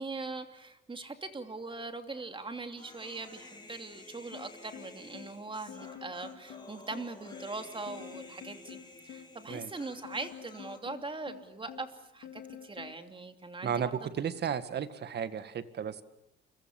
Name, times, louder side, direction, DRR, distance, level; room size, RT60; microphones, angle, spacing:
voice 1, 0.0-8.8 9.0-14.0, right 3 dB, 25° right, 7 dB, 2.8 m, -41 dB
Human voice, 2.8-10.8, left 2 dB, 20° left, 5.3 m, -52 dB
sound 1, 4.3-13.0, left 9 dB, 80° left, 3.1 m, -49 dB
voice 2, 13.6-16.0, right 8 dB, 55° right, 11 dB, 1.9 m, -34 dB
29.5 x 23.0 x 7.3 m, 0.83 s
cardioid pair, 90°, 20 cm